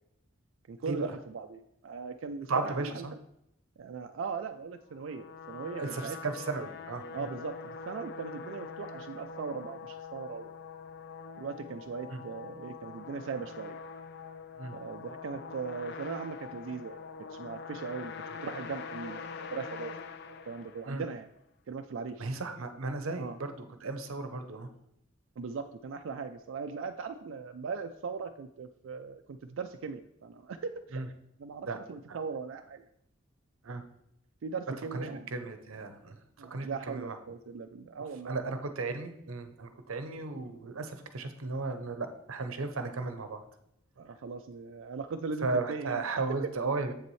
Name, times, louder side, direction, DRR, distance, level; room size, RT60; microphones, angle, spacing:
voice 1, 0.7-3.2 3.8-6.2 7.1-7.6 7.9-10.5 11.4-13.8 14.7-17.0 17.3-18.1 18.4-19.3 19.5-19.9 20.4-21.3 21.7-22.3 23.1-23.4 25.4-31.1 31.4-32.8 34.4-35.3 36.4-38.4 44.0-46.0, right 5 dB, 70° right, 6 dB, 0.4 m, -39 dB
voice 2, 2.5-3.1 5.7-7.3 12.1-12.2 14.6-14.8 20.9-21.0 22.2-23.5 23.8-24.7 30.9-31.1 31.7-31.8 32.1-32.2 33.6-33.8 34.9-37.1 38.2-43.4 45.4-46.9, right 3 dB, 90° right, 8 dB, 0.7 m, -35 dB
sound 1, 4.9-21.2, left 5 dB, 55° left, 0.5 m, -44 dB
7.8 x 6.8 x 3.1 m, 0.80 s
head